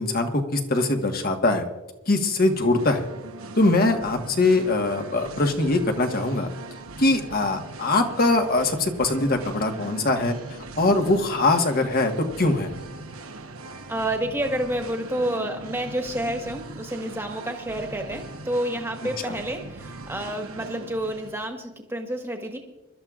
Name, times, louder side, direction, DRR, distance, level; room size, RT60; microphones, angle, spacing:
voice 1, 0.0-1.6 2.1-3.1 3.6-6.5 7.0-12.7 19.3-19.4, left 2 dB, 45° left, 4 dB, 1.5 m, -22 dB
Singing, 2.3-21.5, right 2 dB, 90° right, 1.1 m, -40 dB
voice 2, 13.9-22.6, right 1 dB, 10° right, 3 dB, 1.5 m, -29 dB
24.5 x 13.0 x 2.5 m, 1.1 s
head